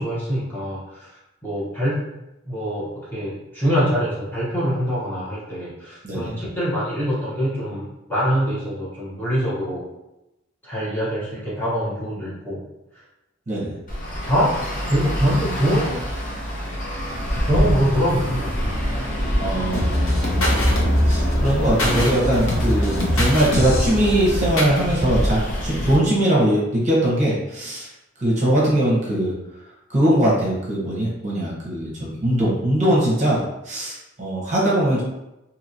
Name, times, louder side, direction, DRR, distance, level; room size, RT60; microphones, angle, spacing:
voice 1, 0.0-2.1 2.5-9.8 10.6-12.6 13.5-13.6 14.3-14.6 14.9-16.0 17.4-18.7, equal, 10° left, -9 dB, 0.8 m, -24 dB
Traffic noise roadway noise, 13.9-26.0, equal, 40° left, 0.8 m, -26 dB
voice 2, 19.4-20.2 20.5-27.9 28.2-29.3 29.9-35.0, right 1 dB, 35° right, -5 dB, 0.8 m, -21 dB
sound 1, 19.7-24.8, left 1 dB, 80° left, 0.7 m, -22 dB
2.9 x 2.8 x 2.6 m, 0.93 s
head